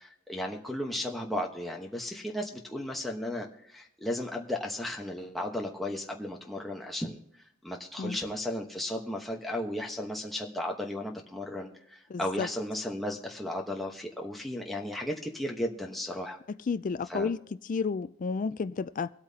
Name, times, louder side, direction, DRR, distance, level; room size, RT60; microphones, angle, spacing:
voice 1, 0.0-7.2 7.6-16.4 17.1-17.3, left 1 dB, ahead, 1.1 m, -35 dB
voice 2, 12.1-12.5 16.7-17.4 17.7-19.1, left 5 dB, 40° left, 0.4 m, -31 dB
24.5 x 8.8 x 2.8 m
head